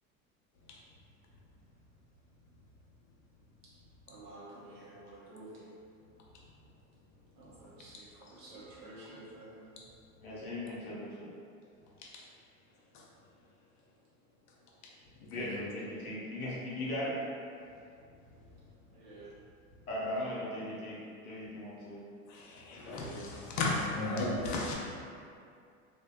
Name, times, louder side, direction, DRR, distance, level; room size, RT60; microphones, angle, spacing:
voice 1, 4.1-5.7 7.4-9.7 18.9-19.3, right 2 dB, 70° right, -7 dB, 0.9 m, -51 dB
voice 2, 10.2-11.3 15.3-17.2 19.9-21.0 21.2-22.0 22.8-23.3, left 1 dB, 85° left, -7 dB, 0.9 m, -38 dB
voice 3, 22.3-24.7, left 2 dB, 45° left, -2 dB, 0.5 m, -34 dB
2.6 x 2.1 x 2.3 m, 2.4 s
hypercardioid pair, 80°, 42 cm